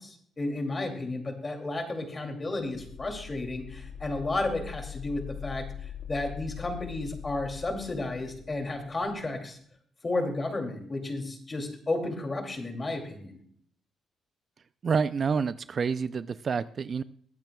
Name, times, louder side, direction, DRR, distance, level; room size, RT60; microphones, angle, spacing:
voice 1, 0.0-5.6 6.1-9.6 10.0-13.4, left 2 dB, 25° left, 4 dB, 2.5 m, -32 dB
sound 1, 2.7-9.3, left 9 dB, 70° left, 0.8 m, -42 dB
voice 2, 14.8-17.0, right 5 dB, 45° right, 15 dB, 0.4 m, -28 dB
21.0 x 9.0 x 2.3 m, 0.62 s
cardioid pair, 90°, 0 cm